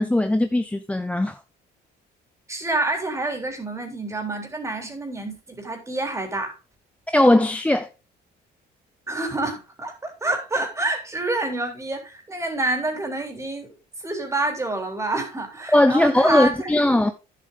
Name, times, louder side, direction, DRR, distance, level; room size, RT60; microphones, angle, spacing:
voice 1, 0.0-1.4 7.1-7.9 15.7-17.1, left 1 dB, 5° left, 0.7 m, -19 dB
voice 2, 2.5-6.6 9.1-13.7 14.0-16.7, right 2 dB, 15° right, 3.5 m, -27 dB
10.5 x 7.6 x 3.8 m
cardioid pair, 110°, 17 cm